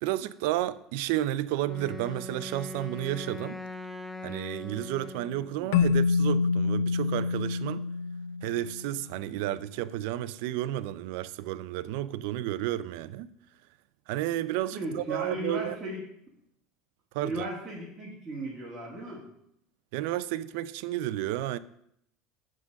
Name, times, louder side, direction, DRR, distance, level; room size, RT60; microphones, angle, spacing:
voice 1, 0.0-3.6 4.2-7.8 8.4-13.3 14.1-15.8 17.1-17.5 19.9-21.6, right 14 dB, 70° right, 0.4 m, -32 dB
Wind instrument woodwind instrument, 1.6-5.6, left 2 dB, 5° left, 0.5 m, -40 dB
Keyboard (musical), 5.7-9.0, left 5 dB, 85° left, 0.3 m, -27 dB
voice 2, 14.7-16.0 17.2-19.2, right 1 dB, 15° right, 1.8 m, -36 dB
11.0 x 3.8 x 6.4 m
cardioid pair, 160°, 0 cm